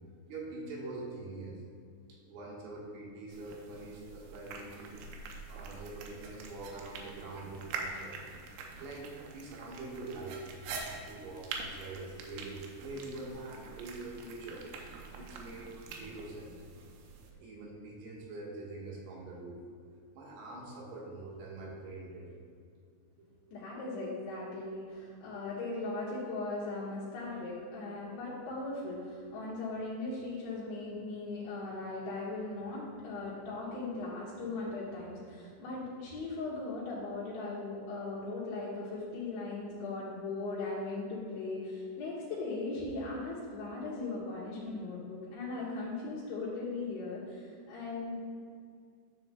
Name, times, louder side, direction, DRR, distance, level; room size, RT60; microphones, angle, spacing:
voice 1, 0.3-1.6 2.1-4.9 5.5-8.2 8.8-10.4 11.1-14.6 15.1-16.5 17.4-19.6 20.1-22.4 23.2-23.3 33.1-33.4 33.7-33.8 36.2-36.3, right 2 dB, 70° right, -3 dB, 3.0 m, -44 dB
sound 1, 3.3-17.3, right 4 dB, 85° right, 3.1 m, -45 dB
voice 2, 23.5-48.2, left 3 dB, 75° left, -7 dB, 3.4 m, -38 dB
12.5 x 7.5 x 2.2 m, 2.3 s
omnidirectional pair, 5.6 m